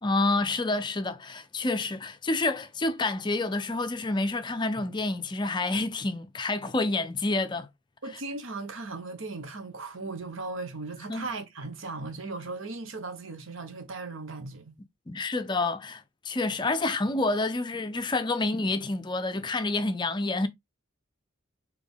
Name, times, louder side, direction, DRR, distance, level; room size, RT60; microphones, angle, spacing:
voice 1, 0.0-7.7 11.1-11.3 15.1-20.5, left 2 dB, 20° left, 0.4 m, -28 dB
voice 2, 8.0-14.8, right 3 dB, 70° right, 1.0 m, -37 dB
4.2 x 3.0 x 3.4 m
head